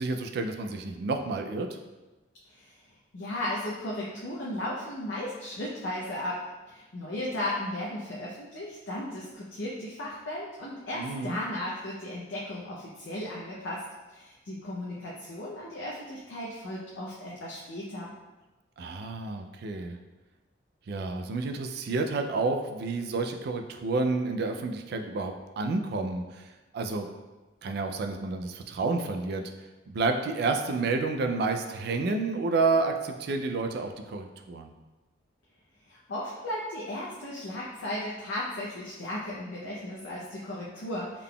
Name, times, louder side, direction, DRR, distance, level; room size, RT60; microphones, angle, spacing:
voice 1, 0.0-1.7 11.0-11.4 18.8-20.0 20.9-26.5 26.7-27.1 27.6-29.4 29.9-34.7, right 3 dB, 55° right, 5 dB, 0.3 m, -30 dB
voice 2, 2.5-2.8 3.1-13.8 14.1-18.1 35.9-41.2, left 1 dB, 80° left, -5 dB, 0.5 m, -35 dB
3.7 x 3.5 x 2.2 m, 1.1 s
head